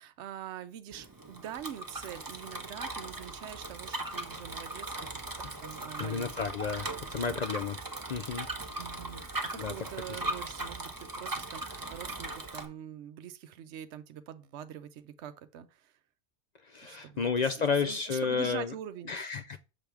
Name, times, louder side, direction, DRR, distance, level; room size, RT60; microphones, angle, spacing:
voice 1, 0.0-6.3 7.0-7.4 8.8-15.9 16.8-19.1, right 10 dB, 75° right, 0.9 m, -44 dB
Bicycle, 0.9-12.6, right 2 dB, 20° right, 0.8 m, -39 dB
voice 2, 6.0-7.8 8.1-8.5 9.5-9.7 10.1-10.2 16.7-18.7 19.1-19.6, left 5 dB, 60° left, 0.4 m, -31 dB
6.9 x 3.4 x 5.8 m
omnidirectional pair, 1.2 m